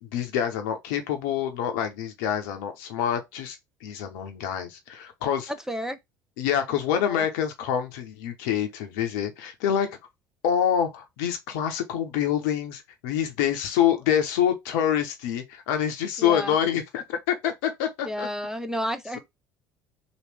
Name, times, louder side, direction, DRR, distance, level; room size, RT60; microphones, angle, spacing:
voice 1, 0.0-5.5 6.4-9.9 10.4-18.3, left 9 dB, 75° left, 0.7 m, -26 dB
voice 2, 5.7-6.0 7.0-7.2 16.2-16.5 18.1-19.2, equal, 5° right, 0.5 m, -31 dB
3.0 x 2.5 x 3.3 m
hypercardioid pair, 65°, 10 cm